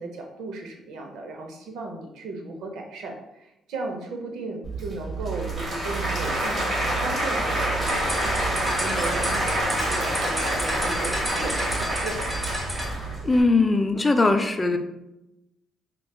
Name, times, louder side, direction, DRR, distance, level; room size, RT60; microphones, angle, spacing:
voice 1, 0.0-6.7 7.0-12.2, right 2 dB, 85° right, 2 dB, 0.6 m, -35 dB
Applause / Crowd, 4.6-13.4, right 1 dB, 40° right, 1.4 m, -27 dB
sound 1, 7.7-12.9, equal, 5° right, 0.8 m, -32 dB
voice 2, 13.2-14.8, left 3 dB, 25° left, 7 dB, 0.4 m, -20 dB
4.8 x 2.3 x 2.3 m, 0.90 s
cardioid pair, 90°, 0 cm